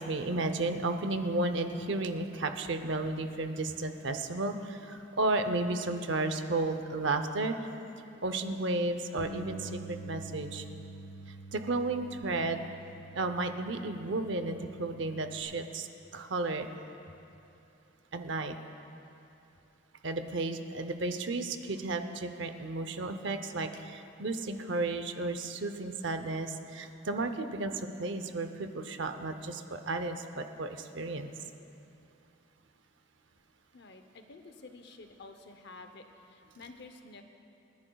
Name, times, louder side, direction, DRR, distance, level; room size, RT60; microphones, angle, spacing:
voice 1, 0.0-7.6 8.2-10.7 11.3-12.6 13.1-16.7 18.1-18.6 20.0-31.3, right 2 dB, 65° right, 8 dB, 0.7 m, -33 dB
Bass guitar, 9.2-15.4, right 2 dB, 70° left, 1.8 m, -47 dB
voice 2, 33.7-37.2, left 3 dB, 55° left, 6 dB, 0.7 m, -50 dB
29.0 x 10.5 x 2.3 m, 2.8 s
head